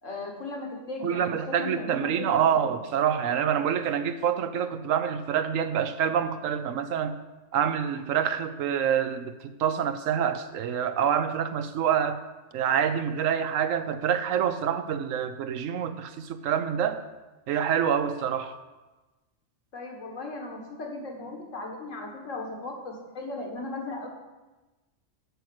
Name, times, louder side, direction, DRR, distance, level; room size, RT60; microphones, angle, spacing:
voice 1, 0.0-2.6 19.7-24.1, left 2 dB, 75° left, 1 dB, 1.9 m, -37 dB
voice 2, 1.0-7.2 7.5-12.2 12.5-17.0 17.5-18.5, right 8 dB, 85° right, 10 dB, 1.1 m, -26 dB
8.1 x 6.4 x 7.6 m, 1.1 s
omnidirectional pair, 1.3 m